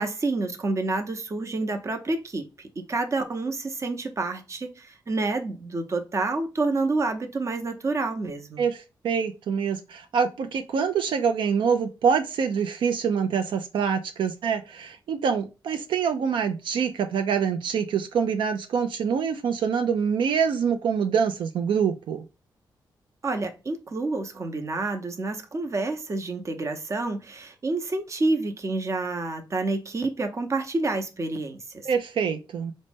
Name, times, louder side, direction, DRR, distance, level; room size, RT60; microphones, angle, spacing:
voice 1, 0.0-8.6 23.2-31.8, right 3 dB, 35° right, 0.7 m, -28 dB
voice 2, 8.6-22.2 31.8-32.7, right 6 dB, 85° right, 0.4 m, -25 dB
4.0 x 2.1 x 3.3 m
cardioid pair, 95°, 8 cm